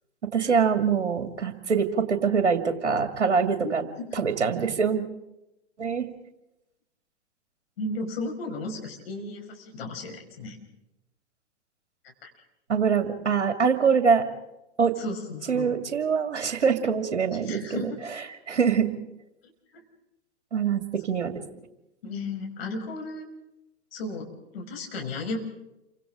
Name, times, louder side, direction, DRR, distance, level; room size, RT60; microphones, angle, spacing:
voice 1, 0.3-3.8 4.1-5.0 5.8-6.1 12.7-14.3 14.8-14.9 15.5-17.9 18.5-18.9 20.5-21.4, right 6 dB, 70° right, 7 dB, 2.4 m, -24 dB
voice 2, 7.8-10.6 15.0-15.8 17.4-17.9 22.0-23.3 23.9-25.4, left 2 dB, 55° left, 2 dB, 5.9 m, -34 dB
28.5 x 25.0 x 3.8 m, 0.91 s
figure-of-eight pair, 105°, 35 cm